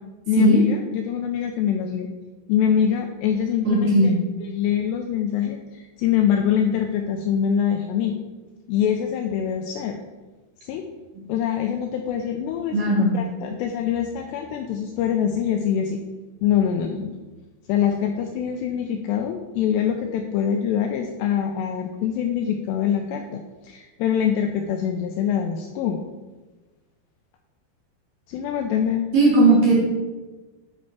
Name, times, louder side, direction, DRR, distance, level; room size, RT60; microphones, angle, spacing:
voice 1, 0.3-2.1 2.5-4.1 4.4-8.2 8.7-10.0 10.6-10.8 11.3-16.0 16.4-17.2 17.7-26.0 28.3-29.1, left 8 dB, 80° left, 4 dB, 2.5 m, -24 dB
voice 2, 3.7-4.1 12.7-13.1 29.1-29.8, right 2 dB, 55° right, -4 dB, 3.5 m, -17 dB
10.0 x 5.5 x 4.6 m, 1.2 s
omnidirectional pair, 5.4 m